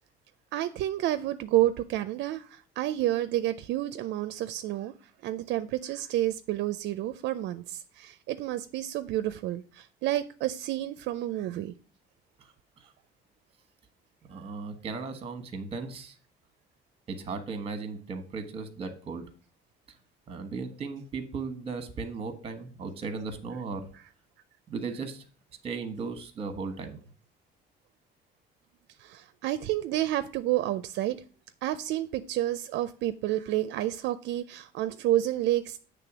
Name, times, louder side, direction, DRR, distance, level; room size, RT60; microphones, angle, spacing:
voice 1, 0.5-4.9 5.2-11.7 29.0-31.2 31.6-35.8, right 14 dB, 70° right, 0.4 m, -30 dB
voice 2, 12.4-12.9 14.3-16.1 17.1-19.2 20.3-23.9 24.7-25.2 25.6-27.0, right 4 dB, 30° right, 1.2 m, -36 dB
8.5 x 3.4 x 6.0 m
cardioid pair, 160°, 19 cm